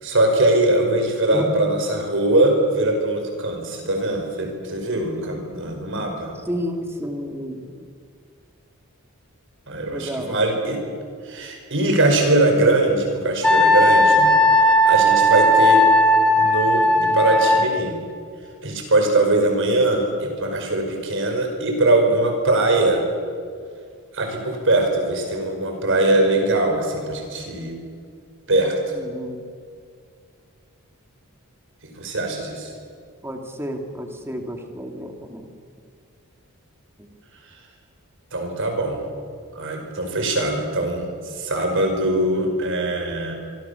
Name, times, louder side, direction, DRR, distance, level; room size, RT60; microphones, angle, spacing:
voice 1, 0.0-6.4 9.7-10.8 11.2-14.3 14.6-15.9 16.4-18.0 18.6-23.1 24.1-27.7 28.5-29.1 32.0-32.7 38.3-39.0 39.6-43.3, right 2 dB, 60° right, 3 dB, 5.4 m, -21 dB
voice 2, 6.4-7.9 9.9-10.4 29.0-29.4 33.2-35.5 37.0-37.1, equal, 10° right, 4 dB, 2.5 m, -31 dB
Wind instrument woodwind instrument, 13.4-17.7, equal, 5° left, 2.7 m, -16 dB
25.0 x 24.5 x 7.1 m, 2.2 s
head